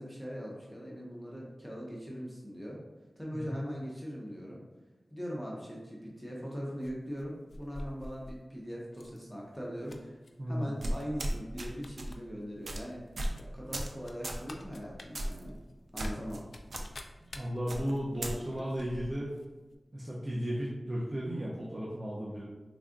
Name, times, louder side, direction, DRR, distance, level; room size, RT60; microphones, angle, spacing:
voice 1, 0.0-2.8 3.2-4.6 5.1-10.2 10.5-13.0 13.4-15.6 15.9-16.4, equal, 5° left, -4 dB, 0.7 m, -40 dB
sound 1, 6.8-8.4 8.9-9.2 9.5-10.3 10.9-11.1 11.3-12.2 12.5-12.6 13.3-19.5 19.7-19.8, left 2 dB, 75° left, 0.3 m, -49 dB
voice 2, 10.4-10.7 17.3-19.3 19.9-22.4, equal, 35° right, -6 dB, 0.7 m, -34 dB
sound 2, 10.8-11.7 12.0-12.2 12.6-12.8 13.2-13.4 13.7-13.9 14.2-14.4 15.1-15.4 16.0-16.4 16.7-16.8 17.7-18.3, right 1 dB, 85° right, 0.4 m, -35 dB
3.5 x 2.3 x 3.8 m, 1.2 s
wide cardioid pair, 75°, 0 cm